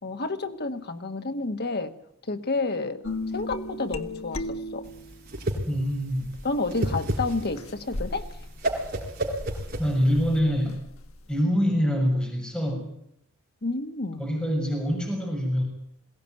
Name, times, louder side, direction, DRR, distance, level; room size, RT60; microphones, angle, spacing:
voice 1, 0.0-1.9 2.3-3.0 3.3-4.9 6.4-8.3 13.6-14.2, left 3 dB, 50° left, 7 dB, 1.8 m, -30 dB
sound 1, 3.0-5.4 6.2-11.4, left 1 dB, 75° left, 1.7 m, -37 dB
Whoosh swoosh swish, 4.9-10.4, right 1 dB, 45° right, 4.8 m, -31 dB
voice 2, 5.7-6.3 9.8-10.8 11.3-12.9 14.2-15.6, equal, 5° left, 0 dB, 6.8 m, -25 dB
21.5 x 17.5 x 9.3 m, 0.73 s
head